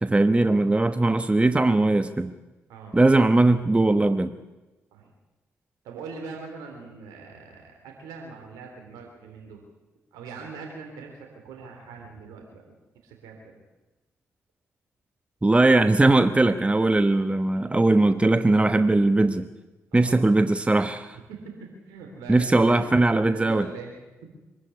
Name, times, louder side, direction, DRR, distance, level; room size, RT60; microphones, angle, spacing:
voice 1, 0.0-2.3 2.9-4.3 15.4-19.5 19.9-21.2 22.3-23.7, right 2 dB, 20° right, 9 dB, 1.1 m, -20 dB
voice 2, 5.8-9.6 10.1-13.6 19.9-20.2 21.3-21.5 21.9-23.9, right 5 dB, 85° right, 2 dB, 3.4 m, -41 dB
24.0 x 13.0 x 9.7 m, 1.1 s
hypercardioid pair, 45°, 6 cm